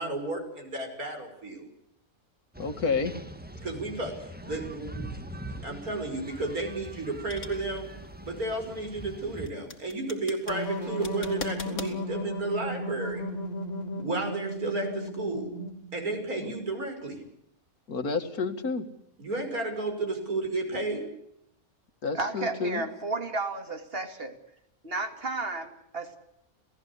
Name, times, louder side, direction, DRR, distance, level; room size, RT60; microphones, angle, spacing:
voice 1, 0.0-1.7 3.6-7.9 8.2-13.2 14.0-15.5 15.9-17.2 19.2-21.1, right 2 dB, 80° right, 4 dB, 6.2 m, -33 dB
riverbank-boats, 2.5-9.5, right 1 dB, 5° right, 1.5 m, -42 dB
voice 2, 2.6-3.1 16.4-16.5 17.9-18.9 22.0-22.8, left 4 dB, 90° left, 8 dB, 2.4 m, -30 dB
sound 1, 6.3-11.9, left 2 dB, 70° left, 3.4 m, -43 dB
sound 2, 10.5-16.1, equal, 25° left, 3.9 m, -35 dB
voice 3, 22.1-24.3 24.8-26.2, right 3 dB, 40° right, 6 dB, 2.8 m, -33 dB
29.5 x 17.5 x 8.3 m, 0.80 s
omnidirectional pair, 1.5 m